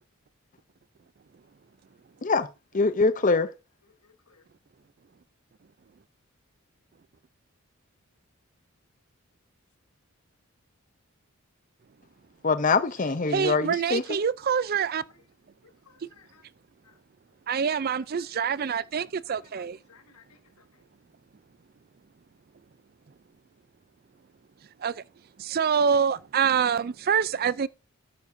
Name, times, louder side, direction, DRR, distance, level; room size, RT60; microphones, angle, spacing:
voice 1, 2.7-3.5 12.4-14.0, left 4 dB, 35° left, 0.6 m, -23 dB
voice 2, 3.8-4.4 14.0-14.1 15.1-15.2 15.6-16.4 16.8-17.0 17.9-18.3 19.3-20.8, left 5 dB, 90° left, 1.9 m, -59 dB
voice 3, 13.3-15.0 17.5-19.8 24.8-25.0 25.4-27.7, right 7 dB, 45° right, 0.4 m, -26 dB
13.0 x 9.5 x 2.7 m
head